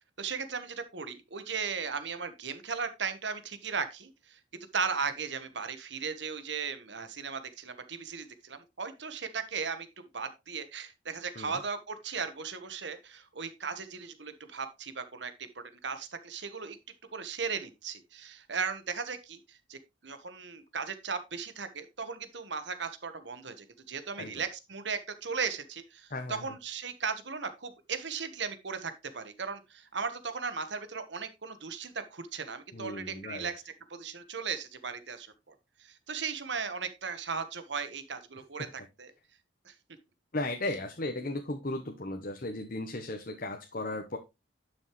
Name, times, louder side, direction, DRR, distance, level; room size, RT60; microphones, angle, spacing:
voice 1, 0.2-4.4 4.7-16.8 17.1-33.6 33.9-35.5 35.8-39.1 39.6-39.7, right 5 dB, 70° right, 10 dB, 1.3 m, -37 dB
voice 2, 26.1-26.4 32.7-33.5 40.3-44.2, left 2 dB, 45° left, 5 dB, 1.0 m, -36 dB
11.0 x 6.4 x 3.2 m, 0.24 s
head